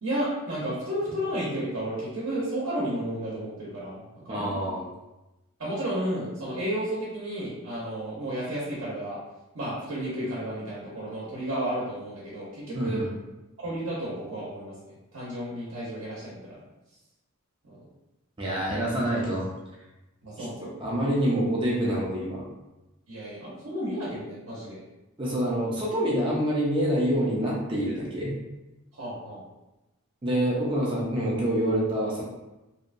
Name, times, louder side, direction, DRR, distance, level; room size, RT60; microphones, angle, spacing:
voice 1, 0.0-4.8 5.6-9.2 9.5-13.0 13.6-14.8 15.1-16.6 17.6-17.8 20.2-20.7 23.1-24.8 28.9-29.4, right 1 dB, 65° right, -8 dB, 0.7 m, -32 dB
voice 2, 4.3-4.9 12.7-13.1 18.4-19.5 20.4-20.5 20.8-22.4 25.2-28.3 30.2-32.2, right 1 dB, 20° right, -4 dB, 0.4 m, -26 dB
2.8 x 2.1 x 2.5 m, 1.0 s
head